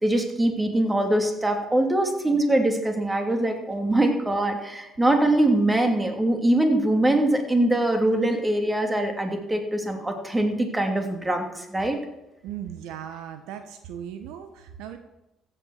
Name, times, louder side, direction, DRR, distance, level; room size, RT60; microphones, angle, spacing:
voice 1, 0.0-12.0, right 1 dB, 15° right, 4 dB, 2.9 m, -23 dB
voice 2, 12.4-15.0, right 9 dB, 75° right, 8 dB, 1.0 m, -37 dB
15.0 x 8.0 x 6.5 m, 0.95 s
hypercardioid pair, 55°, 0 cm